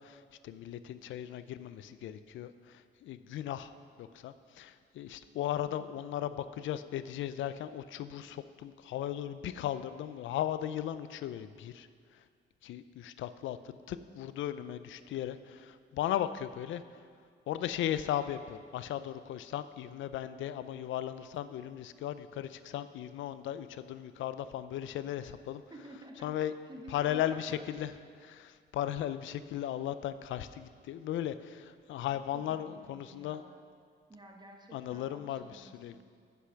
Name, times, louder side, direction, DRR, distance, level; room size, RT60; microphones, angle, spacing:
voice 1, 0.0-3.7 4.0-11.9 12.6-13.6 13.9-16.8 17.5-25.6 26.2-26.5 26.9-27.9 28.2-33.4 34.7-36.0, left 11 dB, 75° left, 12 dB, 0.5 m, -36 dB
voice 2, 25.7-26.4 26.7-27.7 32.3-33.6 34.1-36.0, right 1 dB, 20° right, 1 dB, 1.5 m, -51 dB
9.7 x 6.9 x 5.8 m, 2.1 s
cardioid pair, 90°, 20 cm